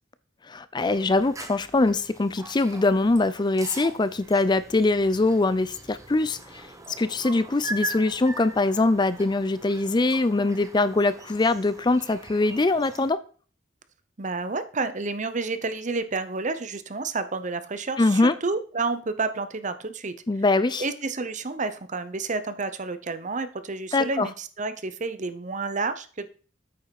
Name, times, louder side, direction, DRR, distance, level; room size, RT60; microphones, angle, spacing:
voice 1, 0.5-6.6 7.0-13.2 18.0-18.3 20.3-20.8 23.9-24.3, left 2 dB, 25° left, 15 dB, 0.4 m, -23 dB
sound 1, 0.8-13.1, right 2 dB, 20° right, 1.0 m, -41 dB
voice 2, 14.2-20.2 20.8-26.3, right 3 dB, 40° right, 12 dB, 0.8 m, -30 dB
8.7 x 5.6 x 5.9 m, 0.39 s
head